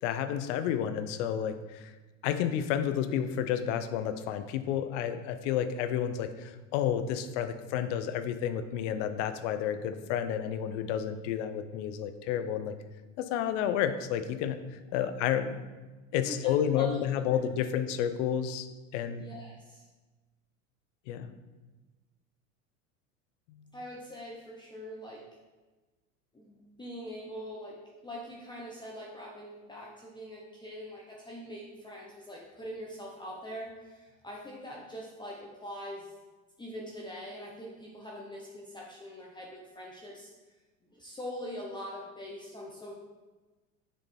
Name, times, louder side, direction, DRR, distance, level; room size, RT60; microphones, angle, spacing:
voice 1, 0.0-1.9 2.2-12.7 13.2-15.6 16.1-18.7 18.9-19.3 21.1-21.3 23.5-23.8, left 9 dB, 65° left, 10 dB, 0.7 m, -31 dB
voice 2, 16.2-17.0 17.3-17.4 19.1-19.9 23.7-25.2 26.3-36.1 36.6-40.3 40.9-42.9, equal, 10° left, -3 dB, 0.8 m, -43 dB
7.2 x 3.2 x 4.2 m, 1.2 s
supercardioid pair, 105°, 38 cm